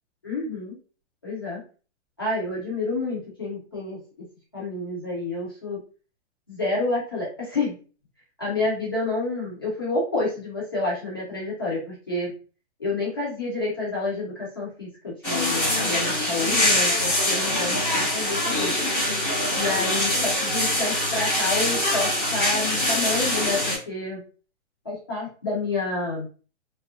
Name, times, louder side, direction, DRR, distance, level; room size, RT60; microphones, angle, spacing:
voice 1, 0.2-0.7 1.2-1.6 2.2-4.0 4.5-5.8 6.5-7.7 8.4-12.3 12.8-18.7 19.5-23.6 23.9-24.2 24.8-26.3, left 2 dB, 20° left, -6 dB, 0.4 m, -29 dB
sound 1, 15.2-23.8, left 1 dB, 5° left, 1.0 m, -24 dB
2.5 x 2.3 x 2.3 m, 0.37 s
hypercardioid pair, 165°, 35 cm